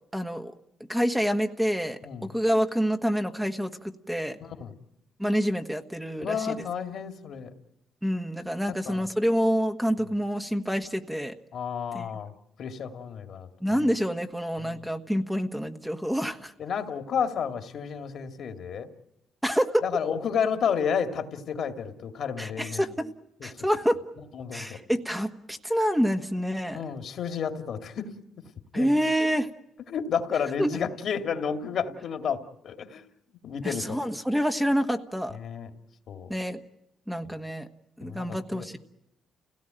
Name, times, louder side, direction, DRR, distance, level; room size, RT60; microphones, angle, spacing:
voice 1, 0.1-0.5 0.9-4.4 5.2-6.6 8.0-11.3 11.9-12.1 13.6-16.5 19.4-19.8 22.4-23.1 23.4-24.0 24.5-26.8 28.7-29.5 30.6-30.7 33.6-35.4 36.3-36.6 37.1-37.7 38.0-38.8, equal, 5° right, 6 dB, 1.4 m, -27 dB
voice 2, 4.4-4.7 6.2-7.5 8.7-9.0 11.5-12.3 12.6-13.5 14.6-14.8 16.6-18.9 19.8-22.8 23.4-23.5 24.3-24.8 26.7-28.1 28.7-29.0 29.9-33.0 33.4-34.0 35.3-35.7 36.1-36.3 38.0-38.7, left 7 dB, 65° left, 7 dB, 2.3 m, -31 dB
30.0 x 17.0 x 9.1 m, 0.86 s
cardioid pair, 90°, 0 cm